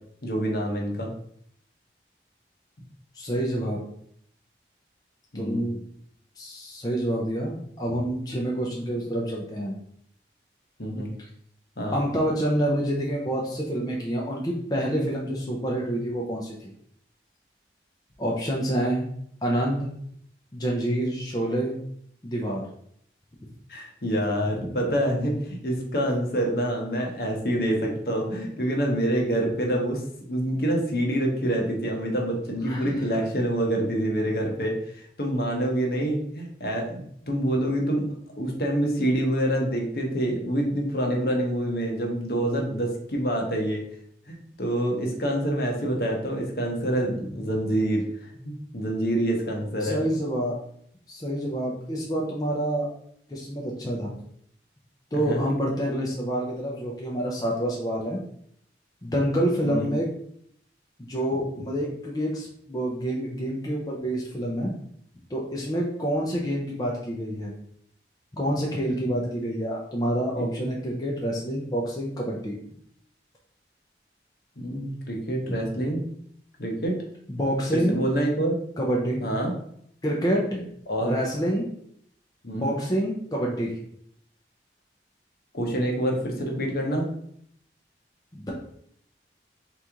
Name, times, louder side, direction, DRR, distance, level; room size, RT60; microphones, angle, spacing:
voice 1, 0.2-1.1 5.3-5.6 10.8-11.1 11.8-12.0 23.7-30.0 30.3-38.0 38.4-43.8 44.3-50.0 55.1-55.4 59.6-59.9 70.4-70.7 74.6-76.0 76.6-77.0 77.7-78.5 79.2-79.5 80.9-81.1 82.4-82.7 85.5-87.1, right 1 dB, 60° left, 0 dB, 0.9 m, -26 dB
voice 2, 3.1-3.8 5.3-5.8 6.4-9.8 11.2-11.3 11.9-16.7 18.2-19.1 19.4-19.9 20.5-21.8 22.2-22.7 32.6-33.0 49.8-50.6 51.1-52.9 53.3-54.1 55.1-58.2 59.0-60.1 61.0-64.7 65.3-67.5 68.4-72.5 77.3-78.0 78.8-79.2 80.0-80.6 81.0-81.6 82.5-83.7 88.3-88.5, equal, 20° left, -3 dB, 0.6 m, -27 dB
4.0 x 3.0 x 3.6 m, 0.67 s
head